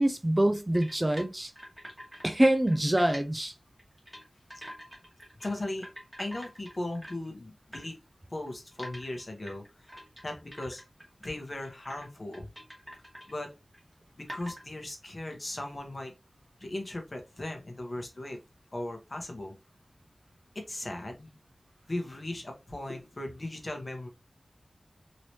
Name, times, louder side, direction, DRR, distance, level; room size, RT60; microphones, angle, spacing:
voice 1, 0.0-1.5 2.2-3.5, right 1 dB, 20° right, 0.4 m, -25 dB
sound 1, 0.7-2.3 2.5-3.2 3.8-4.2 4.5-5.5 5.8-7.3 7.7-7.9 8.5-11.3 11.6-12.1 12.3-13.3 13.7-13.8 14.3-14.7, equal, 5° right, 1.4 m, -45 dB
voice 2, 5.4-5.9 6.2-7.9 8.3-9.9 10.2-10.8 11.2-12.5 13.3-13.5 14.2-16.1 16.6-18.4 18.7-19.5 20.7-21.4 21.9-24.1, left 1 dB, 40° left, 1.0 m, -37 dB
3.1 x 2.9 x 2.8 m
wide cardioid pair, 85°, 0 cm